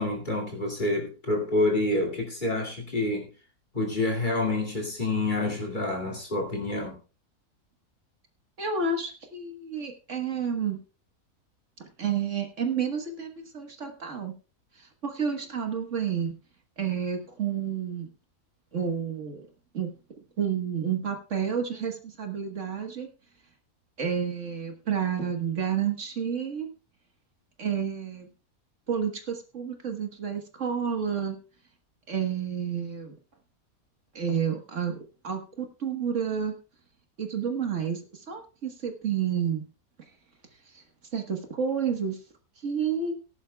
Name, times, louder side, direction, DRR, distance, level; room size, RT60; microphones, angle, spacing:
voice 1, 0.0-3.3 3.7-7.0, left 2 dB, 30° left, 2 dB, 2.5 m, -28 dB
voice 2, 8.6-10.8 12.0-14.3 14.8-16.3 16.8-18.1 18.7-19.5 19.7-19.9 20.4-23.1 24.0-26.7 27.6-28.3 28.9-31.4 32.1-33.2 34.2-35.0 35.2-36.6 37.2-39.7 40.7-40.8 41.1-42.2 42.6-43.1, right 7 dB, 55° right, 4 dB, 1.7 m, -30 dB
18.5 x 11.0 x 2.3 m, 0.33 s
omnidirectional pair, 1.6 m